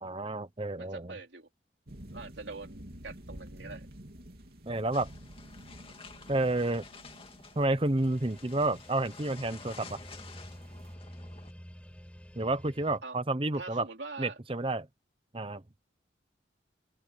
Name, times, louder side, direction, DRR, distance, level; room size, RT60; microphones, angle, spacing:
voice 1, 0.0-1.1 4.7-5.1 6.3-6.8 7.6-10.0 12.3-13.9 14.2-14.9 15.3-15.6, right 2 dB, 30° right, 1.0 m, -30 dB
voice 2, 0.8-1.5 2.1-3.9 13.0-13.2 13.5-14.4, right 3 dB, 80° right, 3.1 m, -43 dB
sound 1, 1.9-10.9, right 1 dB, 55° right, 3.1 m, -51 dB
sound 2, 4.9-11.5, left 4 dB, 30° left, 2.5 m, -51 dB
sound 3, 8.0-13.0, equal, 5° left, 6.9 m, -50 dB
open air
head